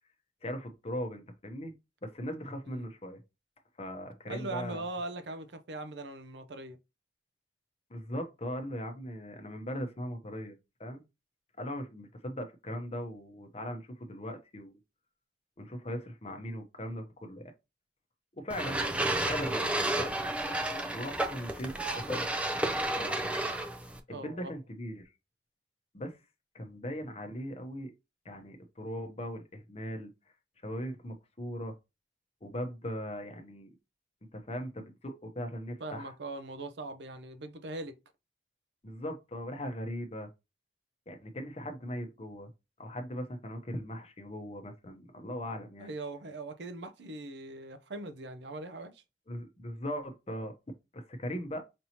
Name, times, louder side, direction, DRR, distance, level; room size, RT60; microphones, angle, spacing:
voice 1, 0.4-1.7 2.0-3.2 3.8-4.8 7.9-11.0 11.6-14.8 15.6-17.4 18.3-18.8 19.2-20.1 20.9-22.3 22.9-23.4 24.1-25.1 25.9-26.2 26.5-27.9 28.2-30.1 30.6-31.8 32.4-33.7 34.3-36.1 38.8-40.3 41.1-42.5 42.8-45.9 49.3-50.5 50.9-51.6, equal, 35° left, 0.8 m, -39 dB
voice 2, 4.3-6.8 24.1-24.5 35.8-37.9 45.8-49.0, right 2 dB, 75° right, 0.6 m, -40 dB
sound 1, 18.5-24.0, right 1 dB, 5° right, 0.4 m, -31 dB
5.2 x 2.8 x 2.9 m
head